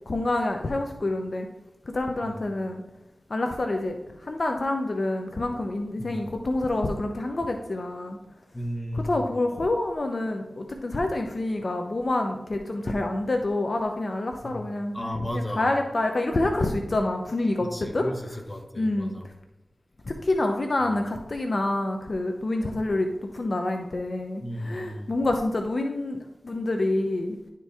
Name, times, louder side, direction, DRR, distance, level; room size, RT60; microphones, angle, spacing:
voice 1, 0.1-1.5 1.9-2.8 3.3-8.2 8.9-18.0 18.8-19.1 20.1-23.1 23.3-26.2 26.4-27.4, left 2 dB, 55° left, 4 dB, 0.7 m, -27 dB
voice 2, 2.2-2.5 5.9-6.3 8.5-9.3 14.4-14.6 14.9-15.7 17.7-19.3 20.8-20.9 24.4-25.1, equal, 20° left, 3 dB, 1.4 m, -34 dB
11.0 x 4.5 x 3.5 m, 1.0 s
wide cardioid pair, 55°, 0 cm